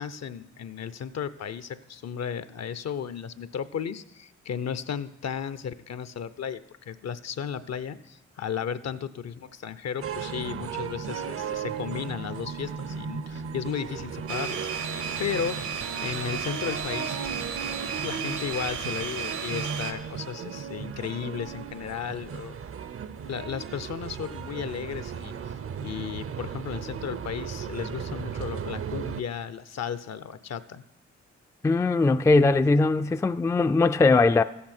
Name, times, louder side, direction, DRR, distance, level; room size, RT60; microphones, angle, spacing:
voice 1, 0.0-15.7 16.0-17.2 18.0-22.6 23.3-25.3 25.8-30.8, left 7 dB, 60° left, 0.6 m, -34 dB
sound 1, 10.0-29.2, right 7 dB, 50° right, 0.6 m, -36 dB
sound 2, 14.3-19.9, right 6 dB, 80° right, 1.2 m, -33 dB
voice 2, 31.6-34.4, left 3 dB, 10° left, 0.3 m, -20 dB
14.0 x 8.5 x 4.4 m
supercardioid pair, 50°, 30 cm